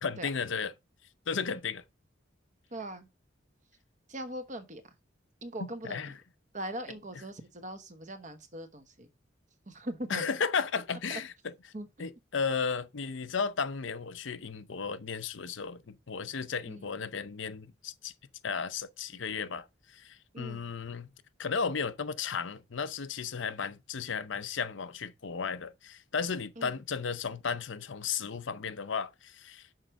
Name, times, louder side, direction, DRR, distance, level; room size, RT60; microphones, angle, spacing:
voice 1, 0.0-0.7 1.3-1.8 5.6-6.1 10.1-11.5 12.0-18.1 18.4-21.1 21.4-29.7, left 5 dB, 75° left, 0.7 m, -34 dB
voice 2, 2.7-3.1 4.1-4.9 5.4-6.1 6.5-9.1 9.7-10.3 11.1-11.2 11.7-11.9 16.7-16.9 20.3-20.7 26.6-26.7, right 1 dB, 40° right, 1.1 m, -41 dB
6.4 x 4.6 x 6.2 m
head